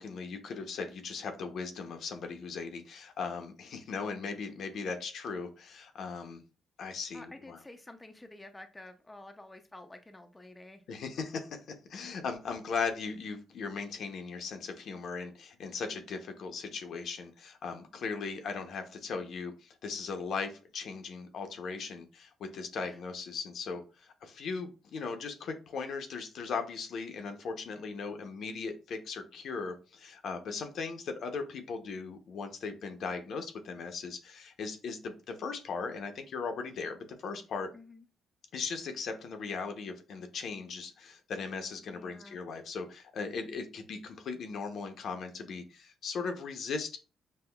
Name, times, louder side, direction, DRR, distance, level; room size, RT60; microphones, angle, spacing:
voice 1, 0.0-6.4 6.8-7.6 10.9-11.6 11.9-37.7 38.5-47.0, left 5 dB, 65° left, 6 dB, 0.6 m, -38 dB
voice 2, 7.1-10.8 12.0-12.2 22.9-23.0 27.7-27.9 37.7-38.0 41.9-42.4, left 2 dB, 15° left, 6 dB, 0.4 m, -50 dB
5.4 x 2.1 x 2.2 m, 0.34 s
cardioid pair, 90°, 0 cm